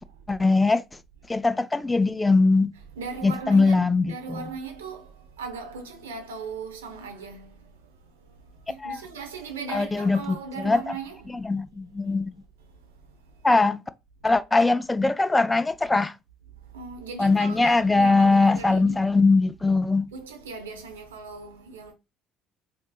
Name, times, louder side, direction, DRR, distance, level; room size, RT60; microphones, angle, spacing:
voice 1, 0.3-0.8 1.3-2.7 3.2-4.4 8.8-9.0 9.7-11.0 11.3-12.3 13.4-13.8 14.2-16.1 17.2-20.1, left 3 dB, 15° left, 0.3 m, -21 dB
voice 2, 3.0-5.1 5.4-7.5 8.7-11.3 16.7-19.0 20.1-21.9, right 5 dB, 85° right, 0.6 m, -38 dB
3.4 x 2.7 x 2.3 m
hypercardioid pair, 60°, 0 cm